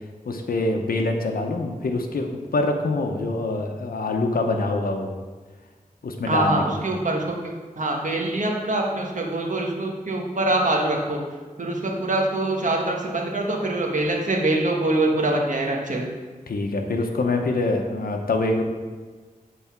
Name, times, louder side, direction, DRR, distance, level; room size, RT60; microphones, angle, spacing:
voice 1, 0.2-5.1 6.0-6.6 16.5-18.6, left 2 dB, 85° left, 3 dB, 0.8 m, -25 dB
voice 2, 6.3-7.2 7.8-11.2 11.6-16.1, right 2 dB, 60° right, 0 dB, 1.3 m, -24 dB
8.0 x 4.1 x 5.9 m, 1.4 s
wide cardioid pair, 55°, 15 cm